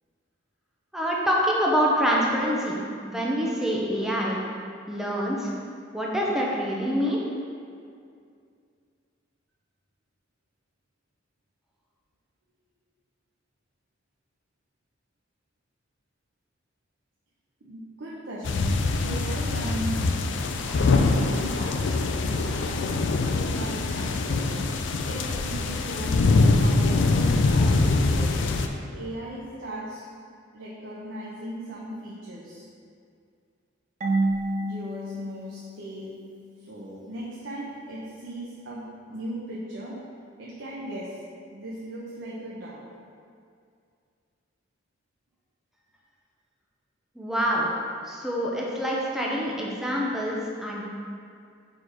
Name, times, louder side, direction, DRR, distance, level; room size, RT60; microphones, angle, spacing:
voice 1, 0.9-2.8 3.0-4.4 4.9-5.5 5.9-7.2 47.2-47.7 48.1-50.9, equal, ahead, -4 dB, 0.7 m, -26 dB
voice 2, 17.6-18.7 19.0-20.3 20.7-22.8 23.6-24.5 25.0-26.1 26.5-28.7 28.9-30.0 30.5-32.6 34.6-36.1 36.6-39.9 40.4-41.2 41.5-42.8, right 1 dB, 85° right, -6 dB, 0.9 m, -38 dB
sound 1, 18.4-28.7, left 3 dB, 70° left, 0.4 m, -23 dB
Marimba xylophone / Wood, 34.0-36.7, right 2 dB, 40° right, 0.6 m, -30 dB
4.6 x 4.4 x 4.9 m, 2.3 s
head